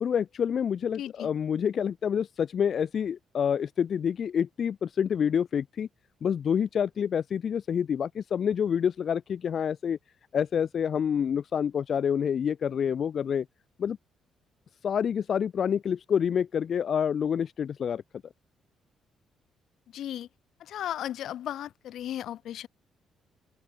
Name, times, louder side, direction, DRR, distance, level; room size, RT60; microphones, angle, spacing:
voice 1, 0.0-5.9 6.2-10.0 10.3-13.4 13.8-14.0 14.8-18.0, left 8 dB, 55° left, 1.0 m, -27 dB
voice 2, 1.0-1.3 19.9-20.3 20.6-22.7, left 11 dB, 75° left, 2.3 m, -35 dB
open air
cardioid pair, 90°, 0 cm